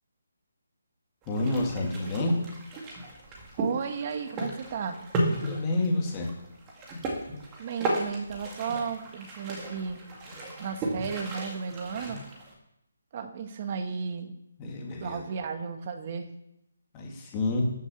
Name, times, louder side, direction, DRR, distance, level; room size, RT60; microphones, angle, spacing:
sound 1, 1.2-12.5, right 1 dB, 15° right, 2.1 m, -35 dB
voice 1, 1.3-2.4 5.3-6.3 14.6-15.2 16.9-17.7, left 2 dB, 15° left, -1 dB, 2.3 m, -29 dB
voice 2, 3.6-5.0 7.6-10.0 10.6-12.2 13.1-14.4 15.0-16.3, right 6 dB, 30° right, 7 dB, 1.3 m, -34 dB
13.5 x 7.2 x 7.1 m, 0.83 s
hypercardioid pair, 170°, 0 cm